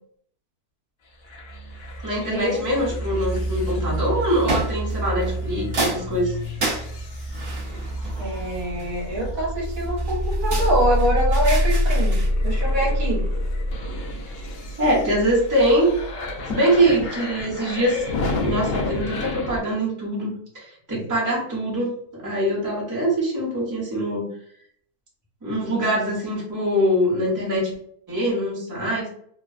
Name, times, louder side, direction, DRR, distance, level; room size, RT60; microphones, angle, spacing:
sound 1, 1.3-19.6, left 1 dB, 60° left, 0.6 m, -27 dB
voice 1, 2.0-6.4 7.7-7.8 14.8-16.0 16.5-18.0 18.4-24.3 25.4-27.7 28.1-29.1, right 1 dB, 15° right, -5 dB, 1.0 m, -23 dB
sound 2, 3.3-3.8 4.5-5.4 5.7-9.1 9.7-12.3, right 2 dB, 45° right, 1.0 m, -30 dB
voice 2, 8.2-13.2, right 1 dB, 65° right, -4 dB, 1.4 m, -25 dB
3.2 x 2.2 x 2.4 m, 0.64 s
omnidirectional pair, 1.6 m